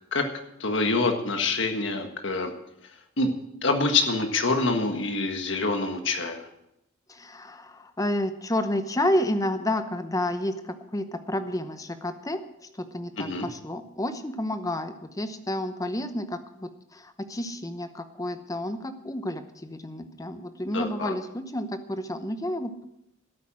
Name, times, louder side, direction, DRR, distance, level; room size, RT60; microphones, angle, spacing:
voice 1, 0.6-2.5 3.2-3.3 3.6-6.5 13.2-13.5 20.7-21.2, left 3 dB, 60° left, 5 dB, 1.6 m, -26 dB
voice 2, 7.1-10.5 10.9-12.4 12.8-22.9, left 1 dB, 15° left, 9 dB, 0.8 m, -30 dB
12.0 x 9.0 x 7.4 m, 0.84 s
head